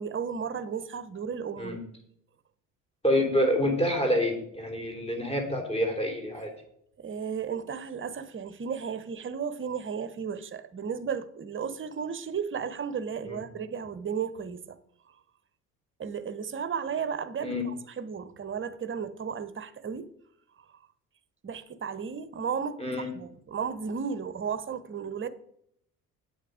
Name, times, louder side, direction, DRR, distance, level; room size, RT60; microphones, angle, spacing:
voice 1, 0.0-1.8 7.0-14.8 16.0-20.1 21.4-25.3, right 6 dB, 25° right, 0.9 m, -34 dB
voice 2, 3.0-6.5 13.3-13.4 17.4-17.6 22.8-23.1, equal, 15° left, 3.3 m, -27 dB
8.7 x 8.2 x 5.0 m
figure-of-eight pair, 60°, 46 cm